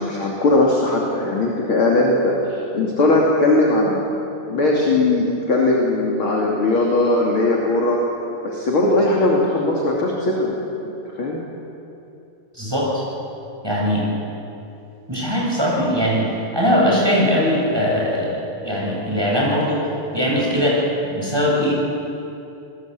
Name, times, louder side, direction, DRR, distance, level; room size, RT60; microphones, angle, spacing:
voice 1, 0.0-4.0 4.5-8.0 8.4-10.6 11.2-11.4, left 2 dB, 35° left, -2 dB, 3.1 m, -19 dB
voice 2, 12.5-13.0 13.6-14.1 15.1-16.3 16.5-19.8 20.1-20.8 21.1-21.8, equal, 5° right, -4 dB, 7.8 m, -20 dB
28.0 x 20.5 x 8.5 m, 2.7 s
omnidirectional pair, 5.0 m